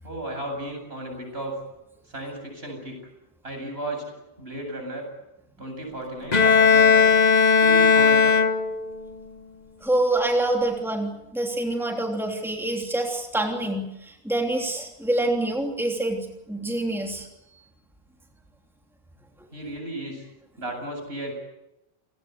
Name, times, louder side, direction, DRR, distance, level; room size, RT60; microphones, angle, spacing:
voice 1, 0.0-1.6 2.1-3.0 3.4-4.0 4.4-5.1 5.6-7.1 7.6-8.4 19.5-20.3 20.6-21.3, right 1 dB, 65° right, 3 dB, 8.4 m, -34 dB
Bowed string instrument, 6.3-9.0, left 5 dB, 40° left, 1.3 m, -17 dB
voice 2, 9.8-17.3, right 1 dB, ahead, 1 dB, 3.1 m, -26 dB
29.5 x 18.5 x 8.2 m, 0.91 s
omnidirectional pair, 1.1 m